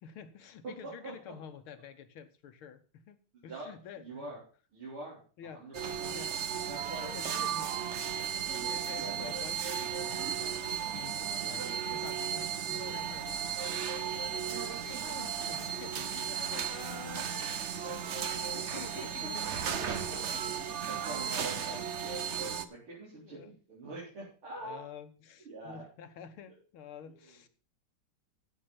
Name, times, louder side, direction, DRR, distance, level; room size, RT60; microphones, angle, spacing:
voice 1, 0.0-4.3 5.4-5.7 6.1-6.4 7.1-7.7 8.7-20.8 21.6-21.8 23.1-23.5 24.6-27.5, left 7 dB, 75° left, 9 dB, 2.0 m, -49 dB
voice 2, 0.6-1.1 3.5-4.4 4.7-6.2 6.7-7.1 9.0-9.3 19.2-19.3 20.1-20.2 20.9-23.4 23.7-24.9 25.5-25.8 27.1-27.3, right 2 dB, 80° right, -6 dB, 5.2 m, -44 dB
sound 1, 5.7-22.7, right 8 dB, 65° right, 0.7 m, -35 dB
15.5 x 6.1 x 5.8 m, 0.39 s
omnidirectional pair, 2.3 m